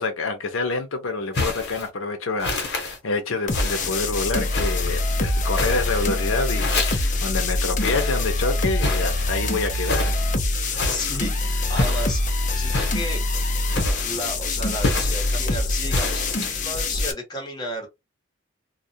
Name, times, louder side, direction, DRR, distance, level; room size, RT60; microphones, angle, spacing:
voice 1, 0.0-10.1 10.5-10.8, left 3 dB, 80° left, 0.6 m, -27 dB
sound 1, 1.3-1.9 2.4-3.0 3.5-4.0 4.5-5.0 5.5-6.1 6.6-7.3 7.8-8.3 8.8-9.3 9.8-10.2 10.7-11.2 11.8-12.2 12.7-13.2 13.7-14.3 14.8-15.4 15.9-16.5, left 2 dB, 55° left, 1.0 m, -28 dB
sound 2, 3.5-17.1, left 2 dB, 40° left, 0.5 m, -24 dB
voice 2, 10.7-13.2 14.0-17.9, left 1 dB, 20° left, 0.9 m, -33 dB
2.3 x 2.1 x 2.6 m
head